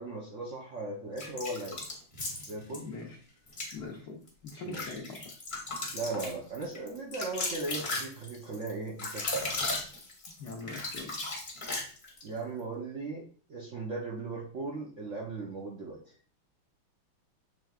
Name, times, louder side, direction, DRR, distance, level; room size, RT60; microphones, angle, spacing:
voice 1, 0.0-1.9 2.5-2.9 4.6-5.0 5.9-9.4 12.2-13.2 13.5-16.0, right 3 dB, 70° right, -3 dB, 0.7 m, -37 dB
sound 1, 1.2-2.8 3.5-3.7 4.3-12.3, left 2 dB, 35° left, 0.8 m, -36 dB
voice 2, 2.7-3.2 3.7-5.3 10.4-11.1, left 4 dB, 70° left, 1 dB, 1.0 m, -42 dB
6.4 x 3.3 x 2.4 m, 0.42 s
omnidirectional pair, 2.4 m